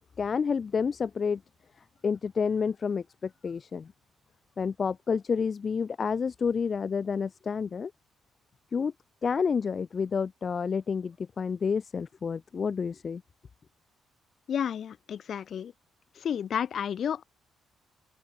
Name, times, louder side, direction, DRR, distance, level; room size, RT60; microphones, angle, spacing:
voice 1, 0.0-1.4 2.0-3.9 4.6-7.9 8.7-8.9 9.2-13.2, left 6 dB, 40° left, 1.0 m, -29 dB
voice 2, 14.5-15.7 16.2-17.2, left 8 dB, 60° left, 2.6 m, -31 dB
open air
cardioid pair, 90°, 0 cm